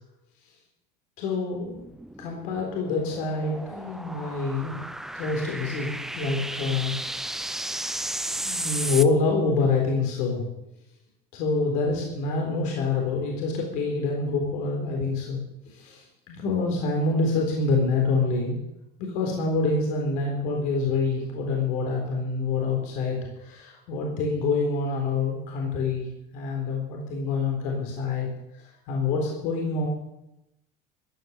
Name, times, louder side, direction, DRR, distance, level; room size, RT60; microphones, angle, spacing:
voice 1, 1.2-1.8 2.2-4.8 5.1-7.3 8.4-10.5 11.3-18.6 19.0-26.1 26.3-28.3 28.5-29.9, left 3 dB, 55° left, 0 dB, 3.9 m, -26 dB
sound 1, 1.5-9.1, right 1 dB, 5° right, 0.5 m, -34 dB
14.5 x 10.5 x 7.2 m, 0.88 s
cardioid pair, 165°, 16 cm